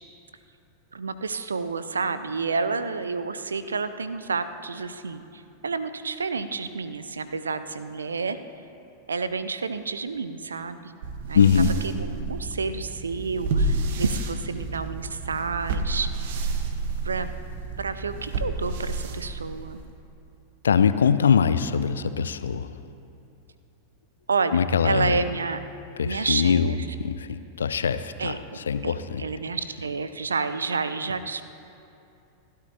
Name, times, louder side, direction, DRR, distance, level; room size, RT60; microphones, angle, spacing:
voice 1, 0.9-8.4 9.1-10.9 11.3-11.5 12.0-16.1 17.0-17.3 17.8-19.8 24.3-24.6 24.8-25.6 26.0-26.8 28.2-28.4 28.8-31.4, right 4 dB, 75° right, 12 dB, 0.6 m, -29 dB
sound 1, 11.0-19.9, right 3 dB, 55° right, 1.2 m, -30 dB
voice 2, 11.3-11.8 20.6-22.8 24.5-25.2 26.0-29.2, left 6 dB, 70° left, 13 dB, 0.5 m, -22 dB
28.5 x 12.5 x 2.9 m, 2.7 s
figure-of-eight pair, 90°, 0 cm